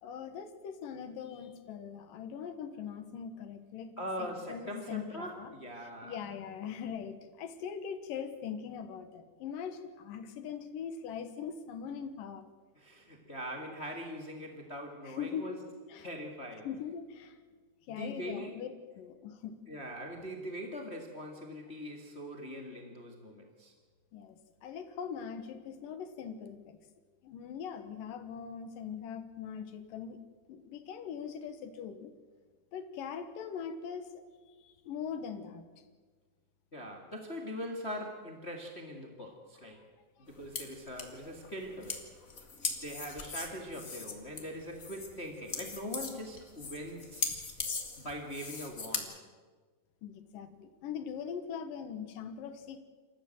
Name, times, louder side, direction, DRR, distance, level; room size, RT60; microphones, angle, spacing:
voice 1, 0.0-3.9 4.2-12.5 15.0-15.5 15.9-16.1 16.6-17.4 17.9-19.6 24.1-26.8 27.2-30.2 30.5-32.1 32.7-34.1 34.5-35.7 50.0-52.8, left 7 dB, 65° left, 9 dB, 2.5 m, -41 dB
voice 2, 4.0-6.2 12.7-15.6 16.0-16.7 17.9-18.6 19.7-23.7 36.7-39.8 40.2-42.1 42.6-47.4 48.0-49.2, equal, 45° left, 3 dB, 0.8 m, -42 dB
sound 1, 40.3-49.0, left 4 dB, 80° left, 0.7 m, -39 dB
28.0 x 14.0 x 7.9 m, 1.5 s
omnidirectional pair, 5.1 m